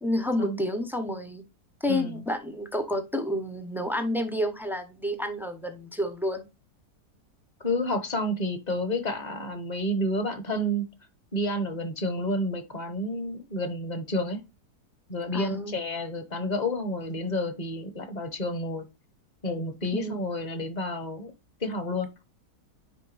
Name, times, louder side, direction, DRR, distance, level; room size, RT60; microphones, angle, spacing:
voice 1, 0.0-1.4 1.8-6.4 15.3-15.8 19.9-20.2, left 1 dB, 5° right, 6 dB, 0.3 m, -29 dB
voice 2, 1.9-2.2 7.6-10.9 11.3-14.4 15.1-18.9 19.4-21.3 21.6-22.1, left 1 dB, 30° left, 9 dB, 1.0 m, -30 dB
9.9 x 3.4 x 3.3 m, 0.25 s
omnidirectional pair, 1.7 m